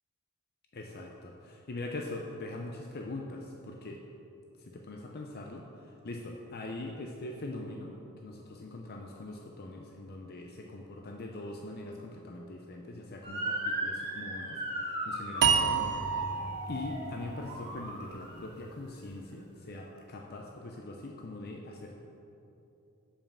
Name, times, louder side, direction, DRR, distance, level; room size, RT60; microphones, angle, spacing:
voice 1, 0.7-4.0 4.6-21.9, left 2 dB, 45° left, 1 dB, 0.6 m, -42 dB
Motor vehicle (road) / Siren, 13.2-18.5, right 1 dB, 25° right, 1.5 m, -37 dB
sound 1, 15.4-18.6, right 6 dB, 50° right, 0.5 m, -30 dB
7.2 x 5.4 x 7.2 m, 2.8 s
head